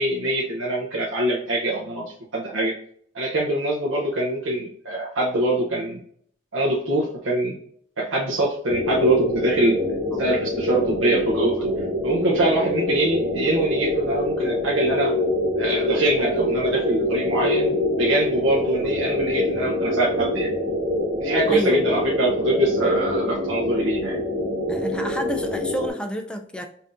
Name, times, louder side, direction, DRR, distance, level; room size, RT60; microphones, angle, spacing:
voice 1, 0.0-2.7 3.1-6.0 6.5-7.6 8.0-9.8 10.2-11.7 12.0-15.1 15.6-20.5 21.2-24.2, right 1 dB, 85° right, -4 dB, 0.8 m, -23 dB
sound 1, 8.7-25.9, left 1 dB, 65° right, 1.3 m, -25 dB
voice 2, 21.5-21.8 24.7-26.6, equal, 5° left, 4 dB, 0.3 m, -29 dB
5.6 x 2.7 x 2.5 m, 0.62 s
head